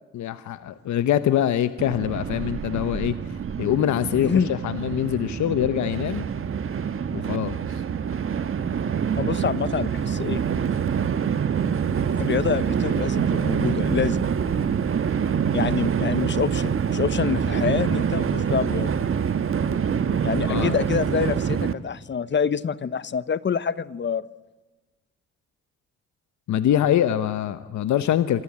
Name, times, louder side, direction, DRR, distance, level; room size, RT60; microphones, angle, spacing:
voice 1, 0.1-6.3 7.1-7.6 20.5-20.8 26.5-28.4, left 11 dB, 70° left, 12 dB, 1.1 m, -24 dB
Train, 1.8-21.7, right 7 dB, 45° right, 1.4 m, -25 dB
voice 2, 4.2-4.5 9.2-10.4 12.2-14.3 15.5-19.0 20.2-24.3, left 6 dB, 40° left, 17 dB, 1.0 m, -26 dB
26.0 x 26.0 x 8.8 m, 1.2 s
cardioid pair, 90°, 30 cm